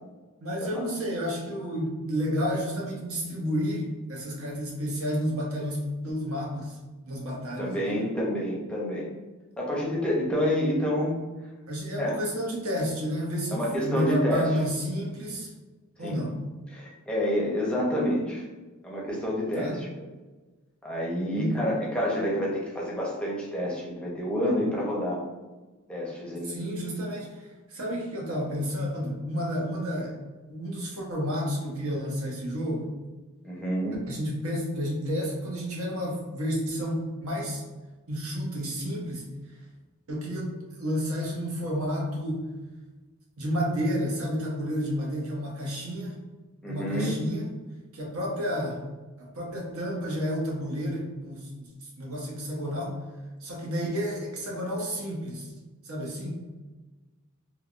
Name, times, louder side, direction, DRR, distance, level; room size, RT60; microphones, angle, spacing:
voice 1, 0.4-6.8 7.0-8.1 11.7-15.5 16.0-16.3 19.5-19.8 21.3-21.5 26.4-30.2 30.5-32.9 34.1-37.6 38.1-39.3 40.1-42.4 43.4-46.1 46.7-47.5 47.9-48.8 49.2-51.7 52.0-52.9 53.4-55.5 55.8-56.5, equal, 70° right, -2 dB, 0.8 m, -31 dB
voice 2, 7.6-9.1 9.6-11.2 12.0-12.2 13.5-14.6 16.0-16.2 16.7-18.4 18.8-20.1 20.8-25.2 25.9-26.5 33.4-34.0 46.6-47.2, equal, 5° left, -4 dB, 0.6 m, -28 dB
3.3 x 2.2 x 2.4 m, 1.2 s
head